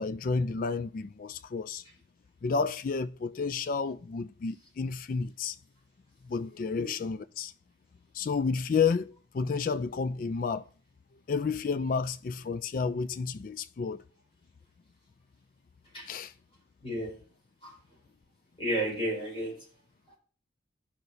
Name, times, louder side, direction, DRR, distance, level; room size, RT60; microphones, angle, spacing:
voice 1, 0.0-1.8 2.4-5.6 6.2-7.5 8.1-10.7 11.3-14.0 16.1-16.3, left 5 dB, 45° left, 0.3 m, -31 dB
voice 2, 16.8-17.1 17.6-17.7 18.6-19.5, right 1 dB, 30° left, 4.9 m, -32 dB
15.0 x 5.8 x 2.7 m
head